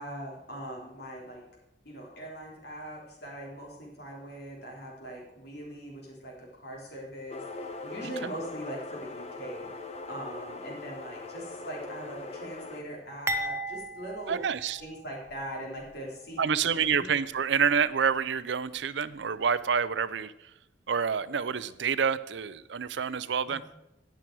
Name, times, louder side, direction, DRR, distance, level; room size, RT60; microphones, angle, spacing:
voice 1, 0.0-1.4 1.9-14.4 14.8-17.0 23.4-23.6, right 1 dB, 60° left, -2 dB, 3.4 m, -41 dB
sound 1, 7.3-12.8, left 3 dB, 35° left, 1.0 m, -41 dB
sound 2, 13.3-15.4 15.8-15.9 16.8-17.0, right 1 dB, 15° right, 0.6 m, -35 dB
voice 2, 14.3-14.8 16.4-20.3 20.9-23.6, right 6 dB, 70° right, 15 dB, 0.5 m, -28 dB
18.0 x 6.2 x 4.6 m, 0.91 s
head